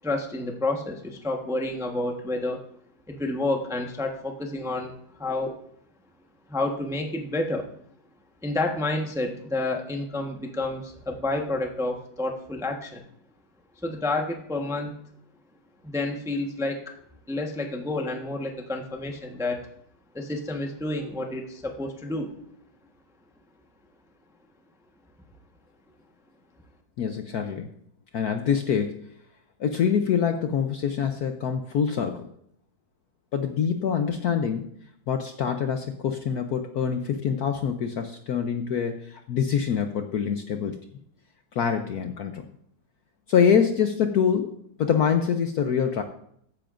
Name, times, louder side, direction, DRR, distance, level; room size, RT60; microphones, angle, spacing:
voice 1, 0.0-2.7 3.1-4.9 5.2-5.5 6.5-7.7 8.4-13.0 13.8-14.9 15.8-16.8 17.3-19.7 20.1-22.3, left 2 dB, 5° right, 2 dB, 0.7 m, -29 dB
voice 2, 27.0-27.7 28.1-29.1 29.6-32.3 33.3-34.6 35.1-40.8 41.5-42.4 43.3-46.0, left 7 dB, 65° left, 6 dB, 1.0 m, -25 dB
14.5 x 10.0 x 2.5 m, 0.67 s
omnidirectional pair, 2.2 m